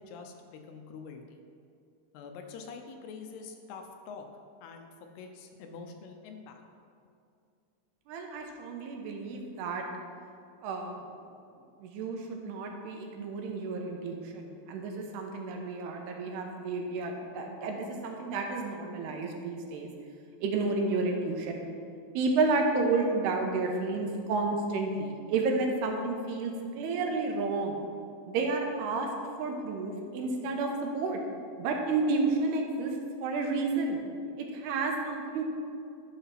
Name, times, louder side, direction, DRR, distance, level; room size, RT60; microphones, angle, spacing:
voice 1, 0.0-1.4 2.1-4.3 4.6-6.6, left 5 dB, 80° left, 4 dB, 2.6 m, -45 dB
voice 2, 8.1-9.8 10.6-11.2 11.8-19.9 20.4-21.6 22.1-27.8 28.3-29.1 29.4-31.2 31.6-34.0 34.4-35.5, right 3 dB, 80° right, 2 dB, 2.9 m, -31 dB
11.5 x 5.0 x 5.8 m, 2.5 s
omnidirectional pair, 4.8 m